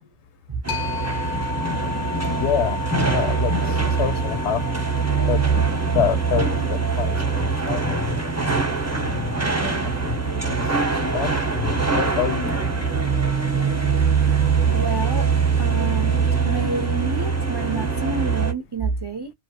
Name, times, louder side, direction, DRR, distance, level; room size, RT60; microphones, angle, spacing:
sound 1, 0.6-18.5, right 5 dB, 15° right, 0.8 m, -23 dB
sound 2, 0.7-10.1, left 6 dB, 55° left, 0.6 m, -35 dB
voice 1, 2.4-4.6 5.3-5.4 5.7-8.2 9.0-9.4 9.8-10.2 10.5-10.7 11.0-12.6, left 9 dB, 90° left, 0.9 m, -27 dB
voice 2, 6.4-6.8 13.6-15.3 15.6-19.3, right 4 dB, 40° right, 0.3 m, -30 dB
2.8 x 2.1 x 2.7 m
omnidirectional pair, 1.1 m